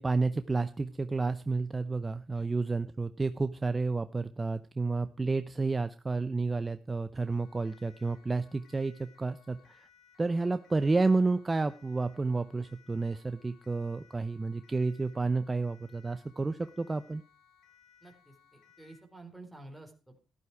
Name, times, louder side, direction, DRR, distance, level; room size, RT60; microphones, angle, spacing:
voice 1, 0.0-9.9 10.2-17.2, right 3 dB, 20° right, 11 dB, 0.7 m, -30 dB
Siren, 7.2-19.1, left 8 dB, 80° left, 2.4 m, -63 dB
voice 2, 18.0-20.2, right 2 dB, 5° right, 1 dB, 4.0 m, -51 dB
13.5 x 11.5 x 4.6 m, 0.32 s
cardioid pair, 90°, 0 cm